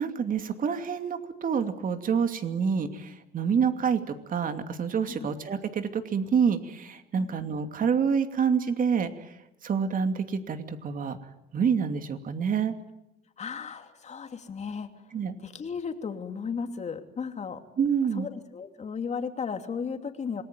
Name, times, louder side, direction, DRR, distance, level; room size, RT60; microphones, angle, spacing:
voice 1, 0.0-9.3 9.6-11.2 11.5-12.7 15.1-15.3 17.8-18.3, right 6 dB, 45° right, 7 dB, 2.7 m, -27 dB
voice 2, 13.4-14.9 15.4-17.6 18.2-20.4, left 6 dB, 35° left, 6 dB, 2.8 m, -35 dB
27.0 x 19.5 x 9.2 m, 0.91 s
cardioid pair, 115°, 19 cm